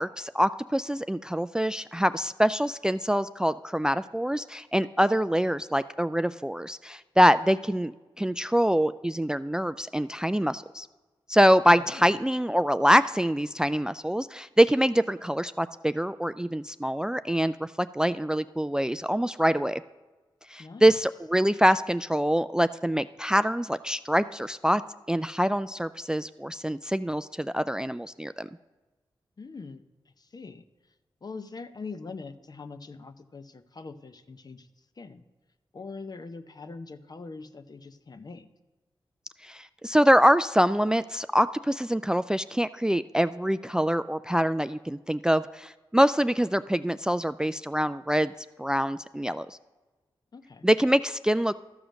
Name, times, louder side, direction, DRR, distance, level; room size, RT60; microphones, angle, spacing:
voice 1, 0.0-7.9 8.2-10.9 11.3-19.8 20.5-24.8 25.1-28.5 39.4-48.3 48.6-49.6 50.6-51.5, equal, 10° right, 13 dB, 0.3 m, -25 dB
voice 2, 11.8-12.1 20.6-21.0 29.4-29.8 30.2-30.7 31.2-34.7 35.0-35.2 35.7-38.5 50.3-50.7, left 4 dB, 45° left, 10 dB, 0.7 m, -42 dB
13.0 x 4.9 x 6.4 m, 1.2 s
cardioid pair, 50°, 9 cm